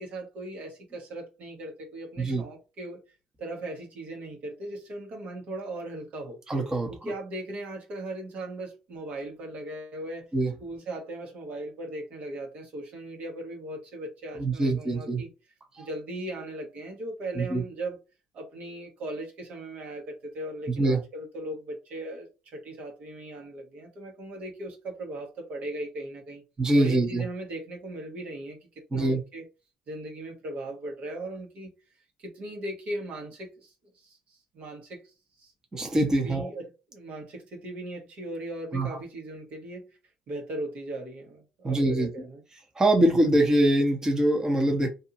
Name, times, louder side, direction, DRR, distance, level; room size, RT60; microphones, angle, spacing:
voice 1, 0.0-3.0 3.4-6.4 6.9-10.3 10.6-15.3 15.8-18.0 18.3-26.4 26.7-29.4 29.9-31.7 32.2-35.5 36.2-39.9 40.3-42.4, right 1 dB, 60° right, 1.2 m, -38 dB
voice 2, 6.5-7.1 10.3-10.5 14.4-15.2 15.8-15.9 17.3-17.6 20.8-21.0 26.6-27.2 28.9-29.2 35.7-36.5 38.7-38.9 41.6-42.1 42.8-44.9, right 1 dB, 20° right, 1.0 m, -23 dB
2.6 x 2.4 x 2.8 m
supercardioid pair, 70°, 3 cm